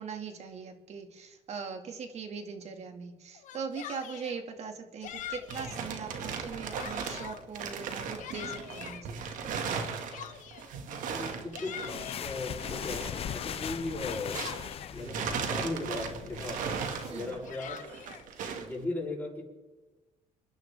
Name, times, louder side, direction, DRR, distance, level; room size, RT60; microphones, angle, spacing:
voice 1, 0.0-9.2 17.1-17.3, right 5 dB, 50° right, 5 dB, 2.2 m, -40 dB
Yell, 3.3-4.4 5.0-5.8 6.3-7.4 7.9-9.0 9.8-10.7 11.3-12.4 12.9-15.0 15.6-15.7 15.9-16.4 17.2-18.2, left 10 dB, 60° left, 1.3 m, -44 dB
sound 1, 5.1-14.7 15.0-18.7, right 6 dB, 70° right, 2.0 m, -38 dB
voice 2, 11.1-14.3 14.9-16.6 17.1-17.8 18.6-19.4, left 2 dB, 10° left, -4 dB, 7.0 m, -37 dB
sound 2, 11.8-17.1, left 9 dB, 45° left, 0.6 m, -39 dB
28.5 x 10.5 x 3.6 m, 1.1 s
cardioid pair, 110°, 14 cm